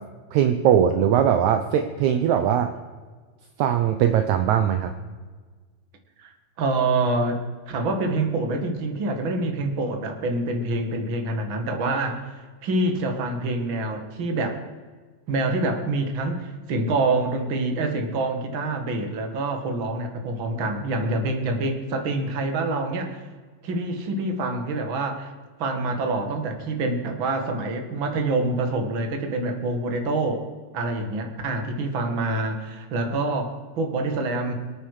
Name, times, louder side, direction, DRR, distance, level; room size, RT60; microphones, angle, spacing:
voice 1, 0.3-2.7 3.6-4.9, right 9 dB, 70° right, 7 dB, 2.1 m, -20 dB
voice 2, 6.6-12.3 12.6-14.6 15.3-23.2 23.6-25.3 25.6-30.4 30.7-34.5, right 2 dB, 40° right, 4 dB, 2.4 m, -26 dB
26.5 x 9.2 x 4.9 m, 1.4 s
omnidirectional pair, 3.7 m